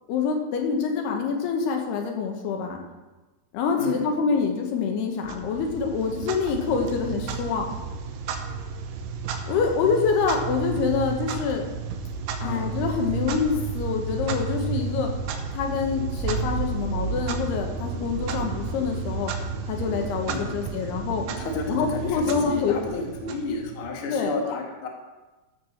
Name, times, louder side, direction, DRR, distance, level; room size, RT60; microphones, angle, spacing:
voice 1, 0.1-2.8 3.5-7.7 9.5-11.7 12.4-15.1 15.5-19.3 19.7-21.2 21.7-22.8 24.1-24.3, left 5 dB, 75° left, 2 dB, 3.1 m, -26 dB
voice 2, 3.7-4.1 12.4-12.7 20.3-20.9 21.4-24.9, left 3 dB, 60° left, 0 dB, 1.4 m, -32 dB
Clock, 5.2-24.0, right 5 dB, 90° right, 3.0 m, -32 dB
11.5 x 4.7 x 7.1 m, 1.1 s
omnidirectional pair, 4.7 m